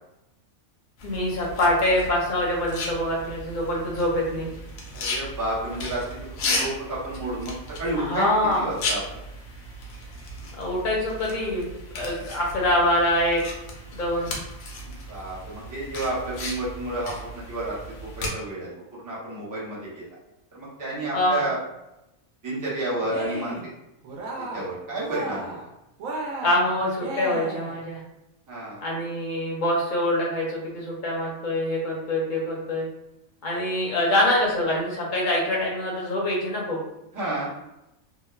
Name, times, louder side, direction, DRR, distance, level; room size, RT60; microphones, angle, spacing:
sound 1, 1.0-18.3, left 2 dB, 75° left, 1.0 m, -35 dB
voice 1, 1.0-4.5 8.0-8.6 10.6-13.4 13.9-14.3 21.1-21.4 26.4-28.0 28.8-32.9 33.4-36.8, left 1 dB, 50° left, -3 dB, 0.6 m, -25 dB
voice 2, 4.9-8.3 8.5-9.0 14.8-20.0 20.5-21.6 22.4-23.6 24.4-25.4 28.5-28.8 33.5-33.6 37.1-37.5, right 1 dB, 25° right, -7 dB, 0.4 m, -31 dB
Cheering, 23.0-23.7 24.0-24.7 25.0-25.7 26.0-27.8, right 2 dB, 75° right, 1.0 m, -34 dB
2.9 x 2.0 x 2.2 m, 0.92 s
omnidirectional pair, 1.5 m